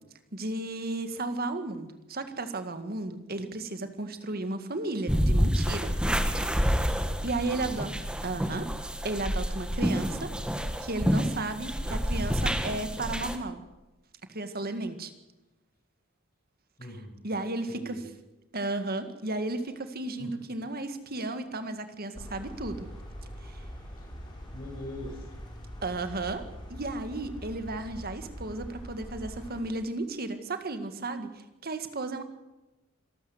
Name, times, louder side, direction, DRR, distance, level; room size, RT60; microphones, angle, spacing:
voice 1, 0.3-6.0 7.2-7.9 8.2-8.7 9.0-10.3 10.8-13.6 14.3-15.1 17.2-18.0 18.5-22.9 23.4-23.6 25.8-32.2, right 2 dB, 50° right, 9 dB, 1.9 m, -34 dB
sound 1, 5.1-13.4, equal, 5° right, 1.6 m, -28 dB
voice 2, 7.4-7.8 16.8-17.1 17.7-18.1 20.2-20.3 23.9-24.1 24.5-25.3, left 1 dB, 45° left, 1 dB, 6.8 m, -42 dB
sound 2, 22.1-29.6, equal, 20° left, 6.9 m, -43 dB
26.0 x 13.0 x 8.0 m, 1.0 s
head